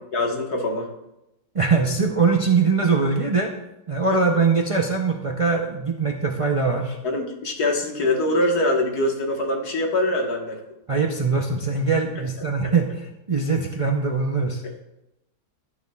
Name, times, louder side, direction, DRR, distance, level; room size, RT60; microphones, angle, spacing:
voice 1, 0.1-0.9 7.0-10.6, left 1 dB, 85° left, 1 dB, 2.0 m, -23 dB
voice 2, 1.5-3.5 3.9-7.0 10.9-14.6, right 4 dB, 40° right, 2 dB, 0.5 m, -22 dB
13.5 x 9.3 x 2.3 m, 0.90 s
omnidirectional pair, 1.6 m